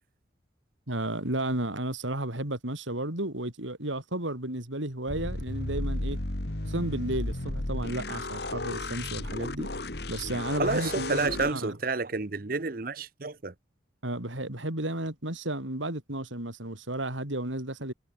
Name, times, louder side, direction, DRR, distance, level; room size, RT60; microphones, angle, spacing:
voice 1, 0.9-6.2 6.6-9.7 10.1-11.7 14.0-17.9, right 1 dB, 85° right, 5.3 m, -33 dB
sound 1, 5.1-11.5, left 2 dB, 55° left, 2.0 m, -34 dB
voice 2, 10.6-13.5, right 3 dB, 50° right, 0.9 m, -30 dB
head